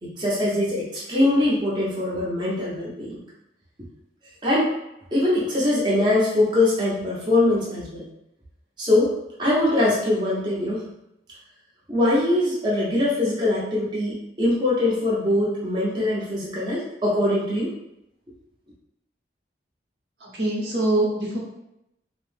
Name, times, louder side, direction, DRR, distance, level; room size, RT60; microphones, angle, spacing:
voice 1, 0.0-3.2 4.4-4.7 5.1-8.0 8.8-9.1 9.4-10.9 11.9-17.7, left 1 dB, 25° right, -7 dB, 0.7 m, -22 dB
voice 2, 20.2-21.4, right 1 dB, 75° right, -4 dB, 0.8 m, -24 dB
2.7 x 2.0 x 3.2 m, 0.83 s
head